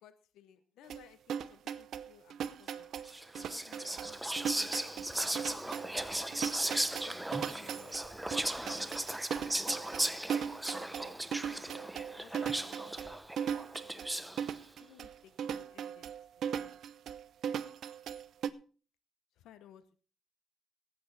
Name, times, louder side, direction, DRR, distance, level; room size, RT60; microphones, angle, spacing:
voice 1, 0.0-2.9 3.3-4.8 5.3-9.6 10.1-13.2 13.8-16.1 16.5-16.8 19.3-20.0, left 10 dB, 85° left, 13 dB, 0.9 m, -60 dB
sound 1, 0.9-18.5, right 8 dB, 70° right, 0.7 m, -38 dB
Whispering, 3.1-14.5, right 1 dB, 5° right, 0.8 m, -37 dB
17.5 x 8.7 x 4.0 m, 0.39 s
cardioid pair, 90°, 0 cm